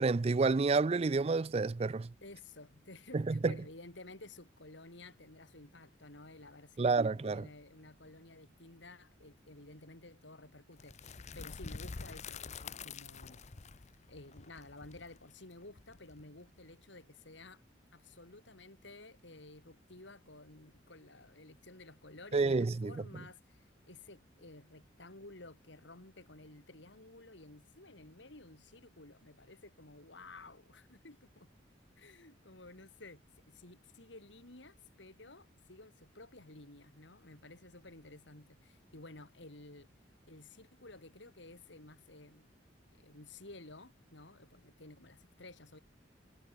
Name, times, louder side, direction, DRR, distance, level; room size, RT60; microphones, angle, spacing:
voice 1, 0.0-2.1 3.1-3.6 6.8-7.4 22.3-22.9, right 3 dB, 30° right, 0.4 m, -29 dB
voice 2, 2.2-13.4 14.1-17.6 17.9-31.5 32.0-39.9 40.3-42.5 42.9-45.8, left 2 dB, 65° left, 3.2 m, -53 dB
sound 1, 10.8-16.6, left 5 dB, 35° left, 0.7 m, -47 dB
head